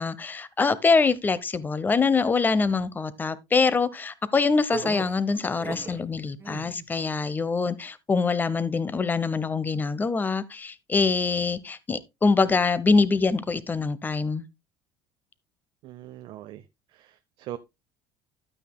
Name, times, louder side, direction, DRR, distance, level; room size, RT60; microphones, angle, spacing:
voice 1, 0.0-14.4, left 4 dB, 20° left, 0.9 m, -24 dB
sound 1, 4.7-6.0 6.4-6.9, right 4 dB, 25° right, 1.2 m, -36 dB
voice 2, 15.8-16.6 16.9-17.6, right 13 dB, 65° right, 0.7 m, -41 dB
12.0 x 9.0 x 2.2 m
cardioid pair, 130°, 10 cm